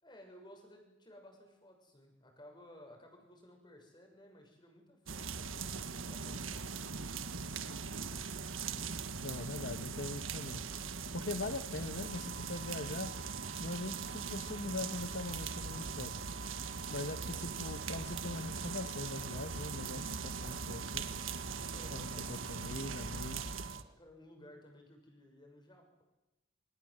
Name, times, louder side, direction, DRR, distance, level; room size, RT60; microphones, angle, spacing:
voice 1, 0.0-6.8 21.4-22.5 24.0-26.0, left 1 dB, 20° left, 3 dB, 6.7 m, -57 dB
sound 1, 5.1-23.8, right 5 dB, 85° right, 1.6 m, -41 dB
voice 2, 9.2-10.6 11.1-13.1 13.6-16.1 16.9-21.0 21.9-23.4, left 2 dB, 55° left, 8 dB, 1.2 m, -41 dB
sound 2, 12.0-23.8, right 7 dB, 45° right, 1.0 m, -51 dB
sound 3, 17.8-24.0, right 2 dB, 25° right, 4.7 m, -63 dB
28.0 x 26.0 x 7.9 m, 0.99 s
head